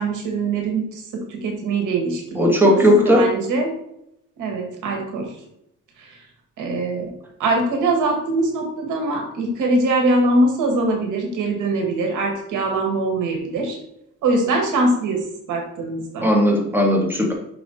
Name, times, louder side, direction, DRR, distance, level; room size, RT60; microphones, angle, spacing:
voice 1, 0.0-3.7 4.4-5.3 6.0-6.2 6.6-7.1 7.4-13.8 14.2-16.3, right 2 dB, 85° right, 3 dB, 2.0 m, -22 dB
voice 2, 2.4-3.3 16.2-17.3, equal, 5° right, 0 dB, 2.1 m, -16 dB
6.2 x 5.7 x 4.2 m, 0.77 s
cardioid pair, 90°, 30 cm